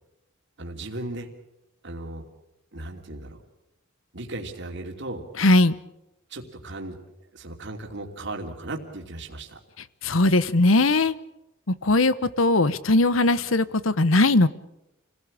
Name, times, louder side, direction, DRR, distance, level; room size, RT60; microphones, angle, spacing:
voice 1, 0.6-1.3 1.8-2.3 2.7-3.4 4.1-5.2 6.3-7.0 7.3-9.6, right 2 dB, 60° right, 2 dB, 2.9 m, -36 dB
voice 2, 5.4-5.7 10.0-11.1 11.8-14.5, left 2 dB, 85° left, 16 dB, 1.1 m, -19 dB
28.5 x 17.5 x 8.6 m, 0.89 s
head